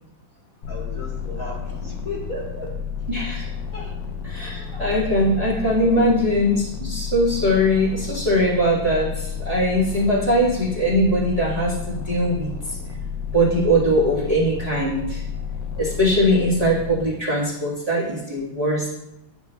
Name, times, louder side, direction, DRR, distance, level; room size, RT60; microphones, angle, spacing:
Space Distortion Loop, 0.6-17.1, left 6 dB, 65° left, 1.3 m, -31 dB
voice 1, 0.7-2.8 3.7-4.0 4.4-5.1 5.8-6.2 7.5-7.6, left 1 dB, 45° left, -4 dB, 1.7 m, -34 dB
voice 2, 3.1-3.5 4.2-12.8 13.3-15.2 15.8-18.9, equal, 20° right, -7 dB, 1.5 m, -21 dB
11.0 x 5.7 x 2.2 m, 0.89 s
omnidirectional pair, 2.2 m